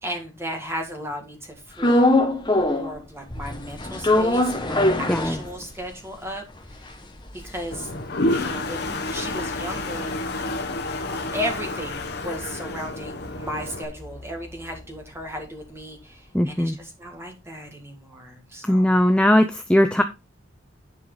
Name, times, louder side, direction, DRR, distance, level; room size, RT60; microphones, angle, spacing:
voice 1, 0.0-2.1 2.4-6.4 6.7-6.9 7.3-7.9 8.3-10.1 11.1-19.0, equal, 15° right, 3 dB, 1.9 m, -35 dB
sound 1, 1.8-3.0 3.3-5.9 6.3-6.4 6.6-11.1 11.4-15.4, left 1 dB, 20° left, 1.4 m, -24 dB
Toilet flush, 7.7-13.8, left 2 dB, 50° left, 1.2 m, -29 dB
voice 2, 16.3-16.8 18.7-20.0, left 1 dB, 5° left, 7 dB, 0.5 m, -19 dB
10.5 x 4.9 x 3.8 m, 0.25 s
head